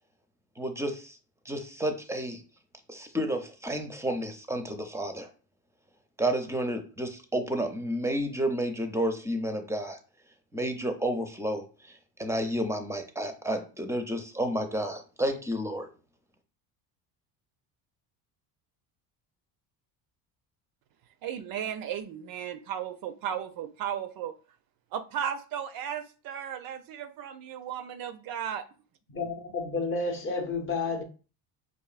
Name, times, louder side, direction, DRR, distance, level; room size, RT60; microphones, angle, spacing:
voice 1, 0.6-1.2 1.5-2.4 2.9-5.3 6.2-10.0 10.5-11.6 12.2-15.9, right 1 dB, 5° right, 0.5 m, -31 dB
voice 2, 21.2-24.4 24.9-28.7, right 9 dB, 55° right, 0.5 m, -35 dB
voice 3, 29.1-31.0, left 4 dB, 30° left, 0.7 m, -31 dB
4.8 x 2.6 x 2.4 m
supercardioid pair, 85°, 42 cm